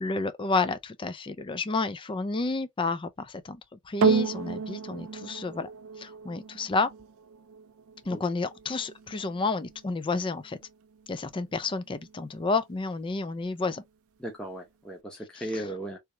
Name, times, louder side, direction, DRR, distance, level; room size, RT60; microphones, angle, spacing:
voice 1, 0.0-5.7 6.0-6.9 8.1-10.6 11.1-13.8 15.5-15.6, left 3 dB, 20° left, 0.4 m, -30 dB
sound 1, 4.0-12.6 13.3-13.4, right 5 dB, 65° right, 0.4 m, -33 dB
voice 2, 14.2-16.0, right 1 dB, 5° left, 0.8 m, -36 dB
3.4 x 2.9 x 2.7 m
head